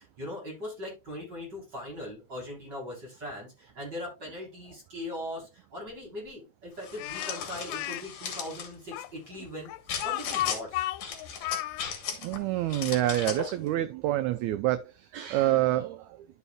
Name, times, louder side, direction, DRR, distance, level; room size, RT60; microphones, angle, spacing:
voice 1, 0.0-9.7 10.0-10.8, left 1 dB, 30° right, 4.1 m, -40 dB
sound 1, 6.8-8.7 9.9-10.6 11.0-12.4 12.7-13.5, left 6 dB, 55° left, 2.5 m, -36 dB
Speech, 7.0-8.0 8.9-11.9, left 16 dB, 90° left, 2.2 m, -33 dB
voice 2, 12.2-16.3, right 14 dB, 90° right, 1.6 m, -27 dB
12.0 x 5.7 x 2.2 m
omnidirectional pair, 3.9 m